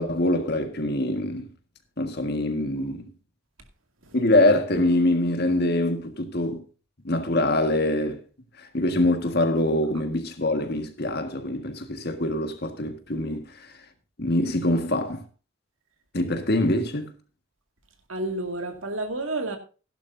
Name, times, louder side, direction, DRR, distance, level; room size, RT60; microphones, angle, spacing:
voice 1, 0.0-1.5 2.0-3.1 4.1-6.6 7.0-8.2 8.6-13.7 14.2-15.2 16.1-17.1, left 1 dB, 50° left, 1.7 m, -24 dB
voice 2, 18.1-19.6, right 2 dB, 80° right, 2.3 m, -30 dB
16.0 x 11.5 x 2.7 m
head